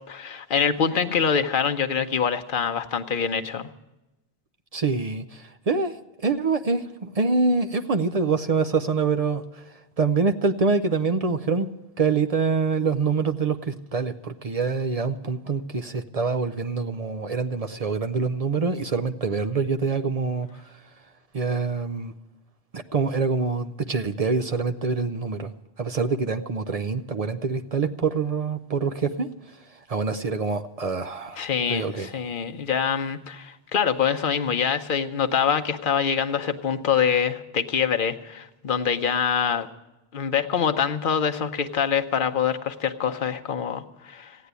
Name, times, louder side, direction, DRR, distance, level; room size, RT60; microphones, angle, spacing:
voice 1, 0.1-3.7 31.4-39.7 40.1-44.4, left 7 dB, 55° left, 6 dB, 1.0 m, -25 dB
voice 2, 4.7-5.9 6.2-9.6 10.0-11.7 12.0-20.6 21.3-22.1 22.7-25.5 25.8-29.3 29.9-32.1, right 4 dB, 45° right, 8 dB, 0.6 m, -25 dB
15.0 x 10.0 x 8.1 m, 0.99 s
omnidirectional pair, 1.0 m